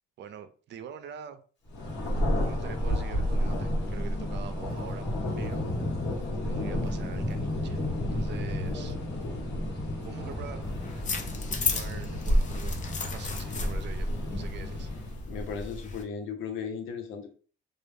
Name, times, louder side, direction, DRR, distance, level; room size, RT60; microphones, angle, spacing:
voice 1, 0.2-1.4 2.4-5.1 5.4-5.7 6.4-9.0 10.0-10.6 11.4-14.9, right 7 dB, 60° right, 10 dB, 0.4 m, -44 dB
Thunder, 1.7-15.3, equal, 65° left, 1.1 m, -31 dB
Thunder 2, 10.1-12.3, right 1 dB, 10° right, 0.7 m, -46 dB
sound 1, 10.6-16.0, left 4 dB, 40° left, 0.5 m, -35 dB
voice 2, 15.3-17.3, left 6 dB, 85° left, 5 dB, 0.6 m, -36 dB
2.3 x 2.0 x 3.1 m, 0.39 s
cardioid pair, 90°, 20 cm